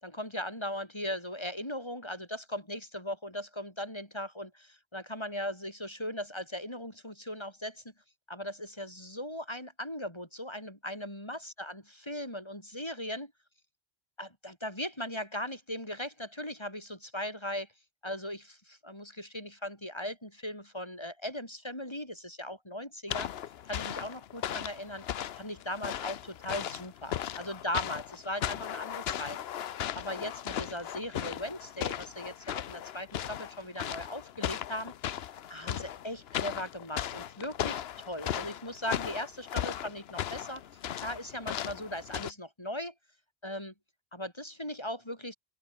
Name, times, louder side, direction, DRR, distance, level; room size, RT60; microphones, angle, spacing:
voice 1, 0.0-7.8 8.3-13.3 14.2-17.7 18.0-23.3 23.7-25.0 25.4-29.7 30.0-35.2 35.5-40.6 41.0-42.9 43.4-43.7 44.1-45.4, left 1 dB, 25° left, 6.2 m, -38 dB
sound 1, 23.1-42.3, left 10 dB, 80° left, 1.0 m, -37 dB
open air
omnidirectional pair, 1.0 m